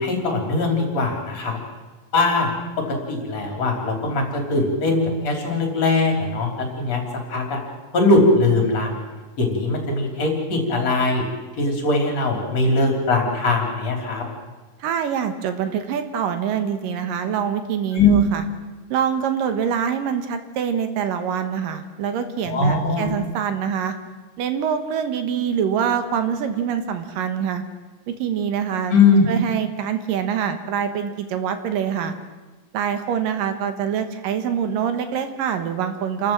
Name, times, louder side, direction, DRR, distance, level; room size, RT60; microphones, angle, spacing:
voice 1, 0.0-1.6 2.1-2.5 2.9-7.0 7.3-7.6 7.9-8.9 9.4-11.3 11.6-14.3 17.9-18.2 22.5-23.1 28.9-29.3, left 2 dB, 50° left, 2 dB, 4.4 m, -20 dB
voice 2, 14.8-18.4 18.9-23.9 24.4-27.6 28.1-28.9 29.3-32.1 32.7-36.3, right 8 dB, 80° right, 8 dB, 3.0 m, -25 dB
28.0 x 13.5 x 7.6 m, 1.2 s
omnidirectional pair, 3.9 m